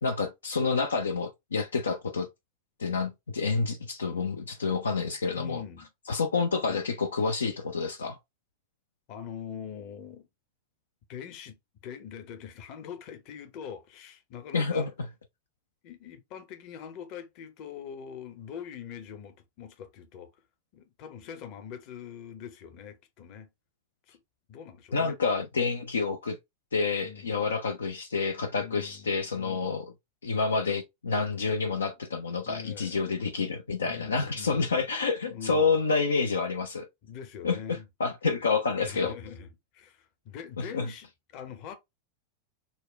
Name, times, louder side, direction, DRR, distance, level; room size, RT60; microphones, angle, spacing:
voice 1, 0.0-2.3 2.8-5.6 6.1-8.2 14.5-14.9 24.9-26.4 26.7-29.9 30.2-36.9 37.4-39.1 40.6-40.9, left 4 dB, 70° left, 0.4 m, -28 dB
voice 2, 5.3-5.9 6.6-6.8 9.1-10.3 11.1-11.6 11.8-14.9 15.8-20.3 20.7-23.5 24.1-24.2 24.5-25.2 27.0-27.5 28.6-29.7 32.4-33.0 33.8-34.7 35.3-35.8 37.0-37.8 38.8-41.8, left 8 dB, 40° left, 0.8 m, -43 dB
4.0 x 2.2 x 3.1 m
figure-of-eight pair, 90°, 0 cm